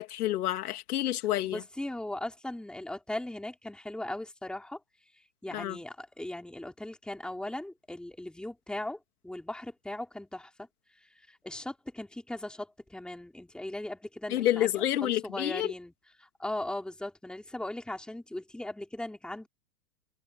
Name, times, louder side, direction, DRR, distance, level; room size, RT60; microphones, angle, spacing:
voice 1, 0.0-1.6 5.5-5.8 14.3-15.7, left 13 dB, 75° left, 3.1 m, -29 dB
voice 2, 1.4-4.8 5.4-9.0 9.2-10.5 11.3-15.9 16.2-19.5, left 1 dB, ahead, 3.2 m, -38 dB
supercardioid pair, 155°, 45 cm